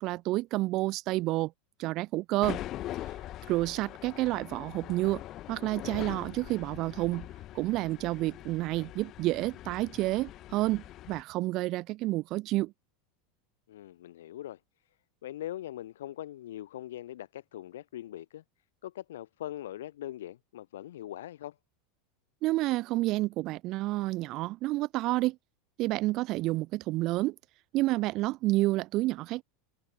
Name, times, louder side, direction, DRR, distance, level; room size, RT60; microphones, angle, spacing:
voice 1, 0.0-1.5 1.8-2.6 3.5-5.2 5.5-7.3 7.5-12.7 22.4-25.4 25.8-27.4 27.7-29.4, right 18 dB, 45° right, 0.3 m, -29 dB
sound 1, 2.4-11.2, left 14 dB, 40° left, 1.6 m, -42 dB
voice 2, 3.5-3.9 13.7-14.6 15.2-18.4 18.8-21.6, left 13 dB, 65° left, 0.5 m, -41 dB
figure-of-eight pair, 80°, 0 cm